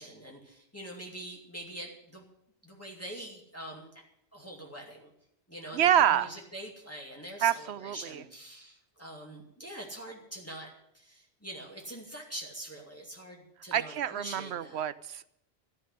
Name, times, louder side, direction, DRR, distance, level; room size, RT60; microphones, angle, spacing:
voice 1, 0.0-2.3 2.6-4.0 4.3-5.1 5.5-14.8, right 1 dB, 15° left, -2 dB, 2.4 m, -44 dB
voice 2, 5.7-6.3 7.4-8.2 13.7-15.3, right 10 dB, 80° right, 16 dB, 0.9 m, -27 dB
13.5 x 7.6 x 9.7 m, 0.76 s
omnidirectional pair, 1.1 m